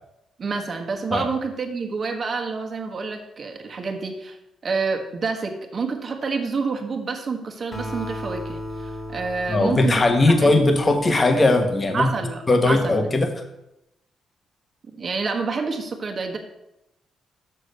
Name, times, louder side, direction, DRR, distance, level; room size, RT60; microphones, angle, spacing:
voice 1, 0.4-4.4 4.6-10.6 11.9-13.0 15.0-16.4, right 4 dB, 40° right, 3 dB, 1.4 m, -28 dB
Acoustic guitar, 7.7-11.3, equal, 5° left, 1.8 m, -35 dB
voice 2, 9.5-12.1 12.5-13.4, left 2 dB, 25° left, 6 dB, 1.3 m, -19 dB
6.8 x 6.3 x 6.5 m, 0.88 s
cardioid pair, 115°, 0 cm